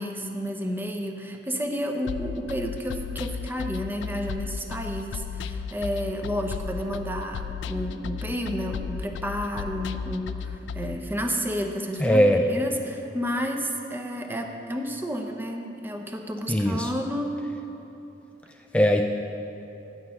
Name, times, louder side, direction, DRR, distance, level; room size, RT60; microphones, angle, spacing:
voice 1, 0.0-17.4, equal, 10° right, 3 dB, 0.7 m, -31 dB
sound 1, 2.1-11.0, left 6 dB, 90° left, 0.3 m, -34 dB
voice 2, 12.0-12.5 16.5-16.9 18.7-19.1, equal, 5° left, 3 dB, 0.3 m, -20 dB
9.0 x 5.6 x 7.9 m, 3.0 s
head